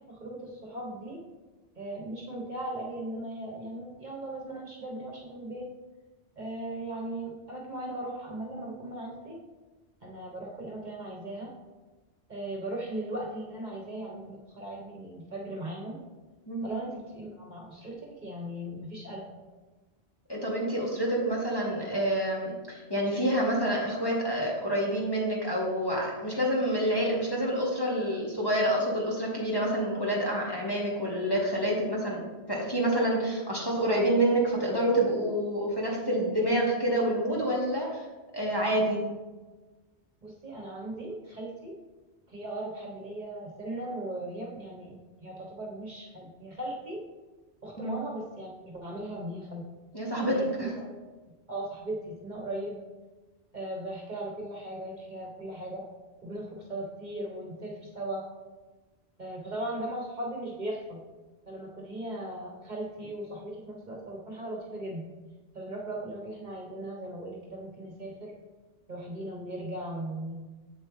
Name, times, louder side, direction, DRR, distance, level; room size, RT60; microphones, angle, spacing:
voice 1, 0.1-1.2 1.7-5.7 6.4-9.4 10.0-11.5 12.3-16.0 16.6-19.4 40.2-41.7 42.3-47.0 47.6-49.6 50.2-51.0 51.5-52.8 53.5-55.8 56.2-58.2 59.2-61.0 61.5-65.0 65.5-68.3 68.9-70.4, right 1 dB, 45° right, -1 dB, 1.2 m, -38 dB
voice 2, 20.3-38.0 38.3-39.0 47.8-48.0 49.9-50.7, right 1 dB, 20° left, -4 dB, 1.3 m, -28 dB
7.7 x 7.3 x 3.2 m, 1.2 s
omnidirectional pair, 1.1 m